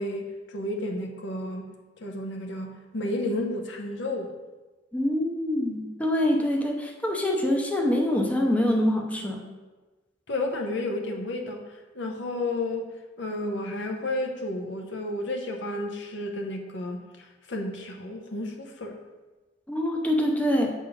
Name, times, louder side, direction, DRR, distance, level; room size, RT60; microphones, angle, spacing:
voice 1, 0.0-1.7 2.0-4.3 10.3-11.6 11.9-12.9 13.2-17.0 17.5-19.0, left 1 dB, 75° left, 2 dB, 0.9 m, -31 dB
voice 2, 4.9-9.4 19.7-20.7, left 1 dB, 10° left, 1 dB, 0.6 m, -25 dB
7.1 x 3.7 x 5.2 m, 1.2 s
head